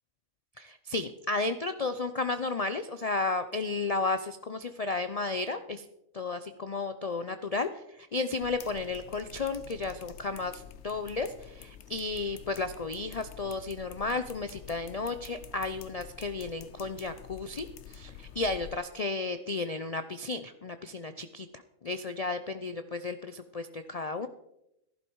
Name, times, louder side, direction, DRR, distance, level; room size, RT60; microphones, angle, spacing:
voice 1, 0.6-5.8 6.1-21.5 21.8-24.3, left 3 dB, 75° left, 10 dB, 0.3 m, -33 dB
sound 1, 8.4-18.8, left 9 dB, 60° left, 0.9 m, -48 dB
14.5 x 11.5 x 4.6 m, 0.84 s
omnidirectional pair, 1.5 m